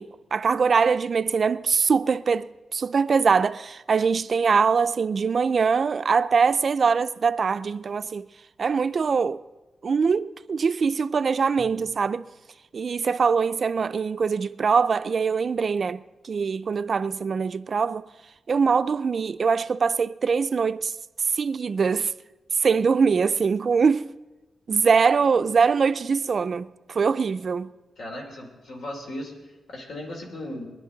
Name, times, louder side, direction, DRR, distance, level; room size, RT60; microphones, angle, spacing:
voice 1, 0.0-8.3 8.6-9.4 9.8-12.3 12.7-18.1 18.5-20.9 21.3-22.1 22.6-24.1 24.7-27.7, right 5 dB, 45° right, 0.4 m, -23 dB
Bowed string instrument, 11.6-12.5, left 2 dB, 40° left, 6.5 m, -51 dB
voice 2, 28.0-30.7, left 1 dB, 85° left, 3.2 m, -37 dB
22.5 x 11.0 x 3.9 m
wide cardioid pair, 125°, 0 cm